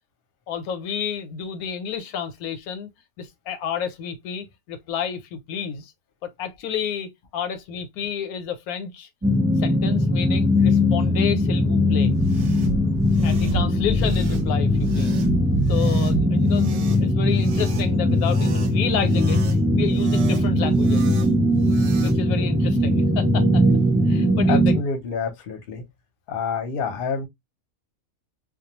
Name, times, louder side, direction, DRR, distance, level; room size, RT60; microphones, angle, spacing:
voice 1, 0.5-2.9 3.2-5.9 6.2-9.1 9.6-12.1 13.2-15.2 15.7-19.4 19.7-21.1 22.0-23.6 24.1-24.8, left 7 dB, 85° left, 1.1 m, -30 dB
sound 1, 9.2-24.8, left 1 dB, 10° right, 0.7 m, -20 dB
sound 2, 12.0-22.2, right 2 dB, 65° right, 0.8 m, -32 dB
voice 2, 24.4-25.8 26.3-27.3, left 5 dB, 50° left, 0.7 m, -28 dB
2.3 x 2.2 x 2.8 m
omnidirectional pair, 1.5 m